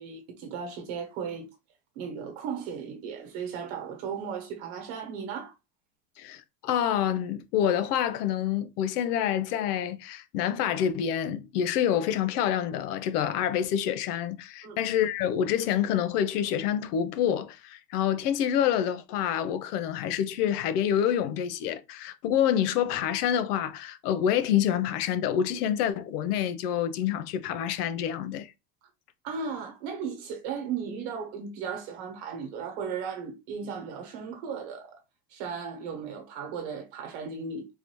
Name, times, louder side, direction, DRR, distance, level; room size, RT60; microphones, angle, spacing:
voice 1, 0.0-1.5 1.9-5.5 14.6-14.8 29.2-35.0 35.3-37.7, right 6 dB, 55° right, 1.2 m, -36 dB
voice 2, 6.2-28.5, left 9 dB, 90° left, 0.7 m, -27 dB
3.9 x 2.6 x 3.0 m
supercardioid pair, 165°, 45 cm